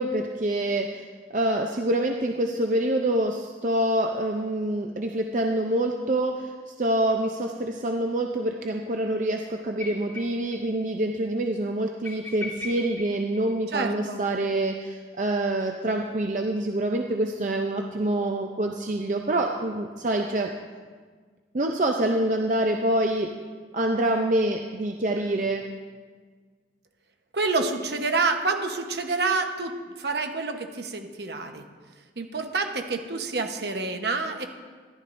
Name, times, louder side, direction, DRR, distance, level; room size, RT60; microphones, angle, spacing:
voice 1, 0.0-20.5 21.5-23.3 23.7-25.7, right 1 dB, 45° right, 2 dB, 0.5 m, -26 dB
sound 1, 9.8-10.6 10.9-11.0 11.2-11.3 12.0-14.1 15.6-16.8, left 3 dB, 10° left, 2.4 m, -40 dB
voice 2, 13.7-14.2 27.3-31.6 32.2-34.5, right 3 dB, 70° right, 5 dB, 1.0 m, -28 dB
14.0 x 11.5 x 2.6 m, 1.5 s
head